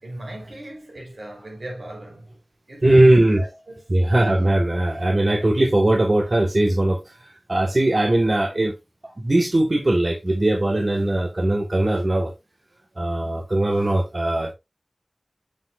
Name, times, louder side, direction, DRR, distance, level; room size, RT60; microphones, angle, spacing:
voice 1, 0.0-2.4 2.7-3.9, right 1 dB, 85° right, 4.5 m, -38 dB
voice 2, 2.8-3.4 3.9-8.7 9.2-12.3 13.0-14.5, right 1 dB, 50° right, 1.7 m, -19 dB
7.3 x 6.1 x 2.6 m
wide cardioid pair, 45°, 0 cm